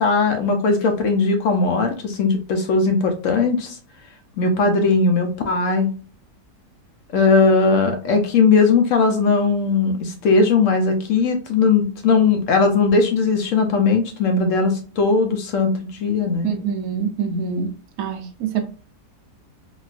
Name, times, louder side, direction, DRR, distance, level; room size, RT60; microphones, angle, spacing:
voice 1, 0.0-3.8 4.4-5.9 7.1-16.5, left 4 dB, 70° left, 0.8 m, -18 dB
voice 2, 16.4-17.7 18.0-18.6, right 6 dB, 75° right, 1.1 m, -25 dB
4.0 x 2.4 x 2.4 m
omnidirectional pair, 1.6 m